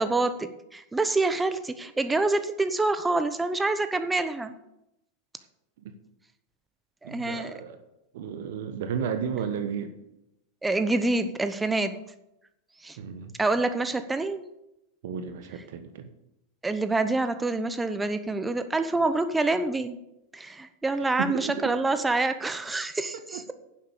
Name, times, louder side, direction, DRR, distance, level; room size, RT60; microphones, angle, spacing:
voice 1, 0.0-4.5 7.0-7.5 10.6-11.9 12.8-13.0 13.4-14.4 16.6-20.0 20.3-23.5, right 2 dB, 10° right, 10 dB, 0.9 m, -26 dB
voice 2, 7.0-7.8 8.1-9.9 13.0-13.3 15.0-16.1 21.0-21.7 23.3-23.4, right 7 dB, 65° right, 8 dB, 1.2 m, -33 dB
10.5 x 7.5 x 7.0 m, 0.86 s
hypercardioid pair, 95°, 0 cm